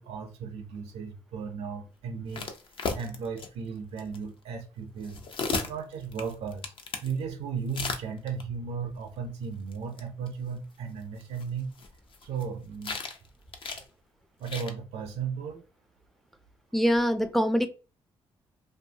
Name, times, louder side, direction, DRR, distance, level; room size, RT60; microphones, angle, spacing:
voice 1, 0.0-2.5 2.9-5.2 5.6-6.7 7.0-11.7 12.2-13.0 14.4-15.6, right 6 dB, 75° right, 0.5 m, -35 dB
sound 1, 2.3-3.5 4.0-4.2 5.0-7.1 7.7-8.4 9.7-9.8 10.0-10.1 10.3-10.4 11.2-12.4 12.8-13.3 13.5-13.8 14.4-14.7, left 4 dB, 55° left, 0.6 m, -34 dB
voice 2, 16.7-17.7, equal, ahead, 0.4 m, -24 dB
2.6 x 2.3 x 2.7 m
cardioid pair, 90°, 11 cm